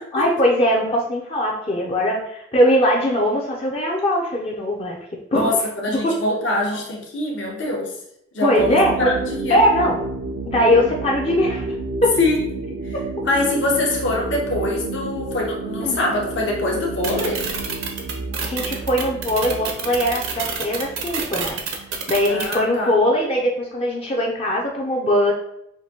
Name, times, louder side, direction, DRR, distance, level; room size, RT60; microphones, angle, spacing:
voice 1, 0.1-5.0 5.3-5.5 5.9-6.4 6.7-6.8 8.4-9.1 9.5-10.0 10.5-11.7 12.0-12.1 15.8-16.0 18.4-21.6 22.1-25.3, equal, 30° left, -2 dB, 0.5 m, -20 dB
voice 2, 5.3-7.9 8.3-9.6 12.2-12.4 12.8-13.0 13.2-17.4 22.3-22.9, left 2 dB, 70° left, -2 dB, 1.0 m, -23 dB
sound 1, 8.6-23.0, right 3 dB, 50° right, 0.3 m, -31 dB
sound 2, 17.0-22.6, right 6 dB, 85° right, 0.7 m, -27 dB
5.7 x 2.6 x 2.8 m, 0.77 s
head